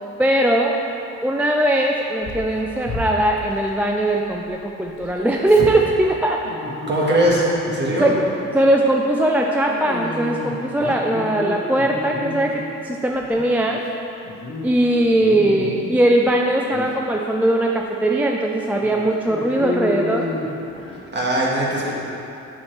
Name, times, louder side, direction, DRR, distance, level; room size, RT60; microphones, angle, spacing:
voice 1, 0.2-0.8 1.2-6.4 8.0-8.3 8.5-13.8 14.6-20.3, right 1 dB, 5° right, 0 dB, 0.3 m, -20 dB
Dog, 2.2-4.5 4.8-8.1 8.5-8.8 9.6-12.7 13.1-13.9 14.2-14.7 15.0-16.3 16.7-16.9 17.6-17.7 18.0-18.1 18.8-21.0, left 2 dB, 45° left, 1.0 m, -31 dB
voice 2, 6.9-8.1 21.1-22.0, right 1 dB, 35° right, -4 dB, 1.5 m, -20 dB
7.1 x 6.2 x 3.3 m, 2.9 s
cardioid pair, 90°, 30 cm